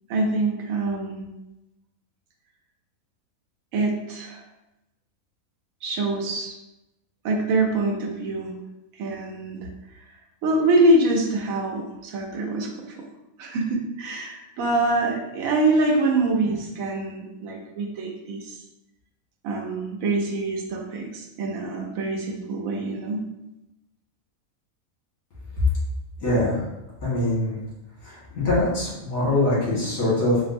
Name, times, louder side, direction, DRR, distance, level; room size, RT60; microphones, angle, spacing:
voice 1, 0.1-1.3 3.7-4.4 5.8-6.5 7.2-8.5 9.0-9.7 10.4-13.0 13.4-18.6 19.4-23.2, right 2 dB, 80° right, 1 dB, 1.0 m, -25 dB
voice 2, 26.2-26.6 27.0-27.6 28.0-30.4, left 1 dB, 85° left, -8 dB, 1.9 m, -23 dB
4.1 x 2.0 x 2.5 m, 0.94 s
omnidirectional pair, 1.4 m